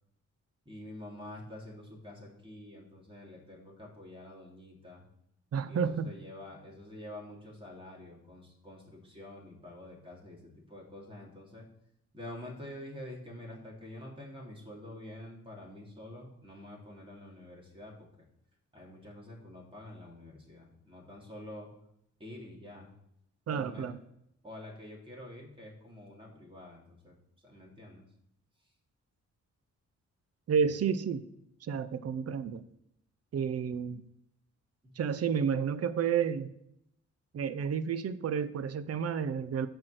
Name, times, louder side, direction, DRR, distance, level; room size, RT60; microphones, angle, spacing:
voice 1, 0.6-5.0 5.7-11.6 12.1-17.9 18.7-21.7 22.2-22.9 23.5-23.9 24.4-27.1 27.4-28.0 34.8-35.2, left 1 dB, 15° right, -2 dB, 3.3 m, -47 dB
voice 2, 5.5-6.1 23.5-24.0 30.5-31.2 31.6-32.6 33.3-34.0 35.0-36.5 37.3-39.7, right 7 dB, 55° right, 13 dB, 0.7 m, -30 dB
11.5 x 4.7 x 7.8 m, 0.78 s
cardioid pair, 105°, 29 cm